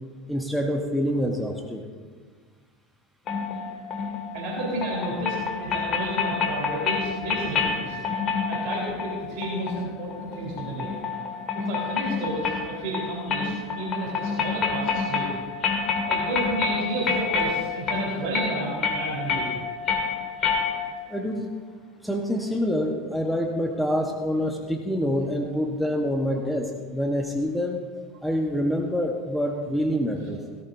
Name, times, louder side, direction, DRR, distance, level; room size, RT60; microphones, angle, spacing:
voice 1, 0.3-1.8 21.1-21.5 22.0-27.8 28.2-30.4, equal, ahead, 2 dB, 1.3 m, -26 dB
sound 1, 3.3-21.1, left 5 dB, 40° left, 2.0 m, -28 dB
voice 2, 4.3-8.0 8.5-10.9 11.5-15.3 16.1-19.5 30.3-30.4, right 1 dB, 55° right, -4 dB, 4.2 m, -31 dB
17.5 x 14.0 x 2.7 m, 1.5 s
figure-of-eight pair, 75°, 0 cm